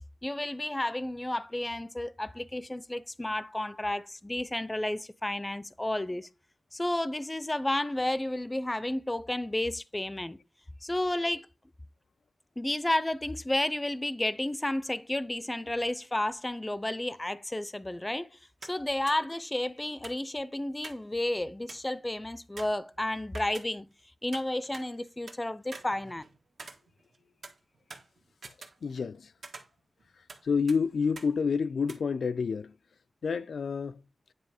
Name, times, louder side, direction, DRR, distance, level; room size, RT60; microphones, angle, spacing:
voice 1, 0.2-6.3 6.7-10.4 10.8-11.5 12.6-23.9 24.2-26.2, left 1 dB, 15° left, 0.4 m, -32 dB
sound 1, 18.6-18.8 19.1-19.2 20.0-21.1 21.4-21.5 21.7-22.0 22.6-24.0 24.3-25.4 25.7-27.2 27.4-29.1 29.4-30.4 30.7-30.8 31.2-31.3 31.9-32.0, right 4 dB, 75° right, 1.4 m, -47 dB
voice 2, 28.8-29.3 30.4-32.7 33.2-34.0, left 5 dB, 80° left, 0.3 m, -29 dB
9.3 x 3.3 x 4.8 m
wide cardioid pair, 100°, 0 cm